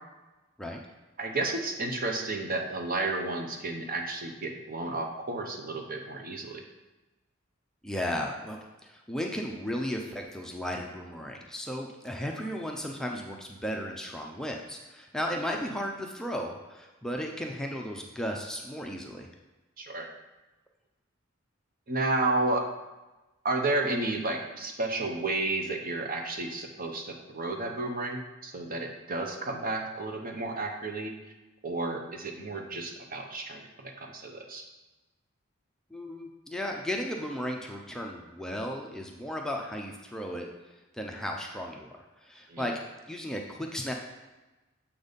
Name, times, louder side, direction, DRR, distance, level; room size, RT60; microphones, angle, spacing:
voice 1, 1.2-6.6 19.8-20.1 21.9-22.7 23.4-31.1 31.6-34.6 42.5-42.7, right 2 dB, 45° right, 3 dB, 0.9 m, -32 dB
voice 2, 7.8-19.3 35.9-40.5 40.9-42.8 43.1-43.9, equal, 5° left, 0 dB, 0.5 m, -35 dB
7.0 x 4.0 x 5.2 m, 1.1 s
head